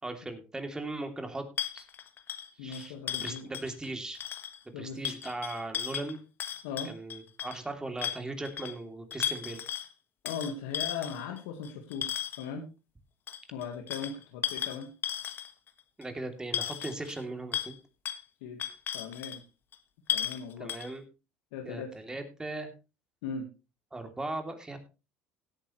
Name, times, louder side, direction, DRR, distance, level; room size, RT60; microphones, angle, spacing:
voice 1, 0.0-1.5 1.7-1.8 2.6-4.2 4.7-6.2 6.8-9.6 16.0-17.8 20.6-21.0 21.6-22.7 23.9-24.8, right 2 dB, 15° right, 6 dB, 2.9 m, -38 dB
sound 1, 1.6-3.9 4.1-4.6 5.0-7.6 8.0-8.7 9.1-9.9 10.3-12.5 13.3-15.7 16.0-16.1 16.5-17.2 17.5-17.7 18.0-18.2 18.6-19.4 19.7-19.8 20.1-20.4 20.7-20.9, left 9 dB, 45° left, 1.4 m, -35 dB
voice 2, 2.6-3.5 4.7-5.0 6.6-6.9 10.2-12.7 13.5-14.9 18.4-18.6 18.9-19.4 20.1-20.7 21.5-22.0 23.2-23.5, left 6 dB, 80° left, 3 dB, 1.6 m, -38 dB
17.5 x 9.0 x 3.1 m, 0.30 s
supercardioid pair, 85°, 5 cm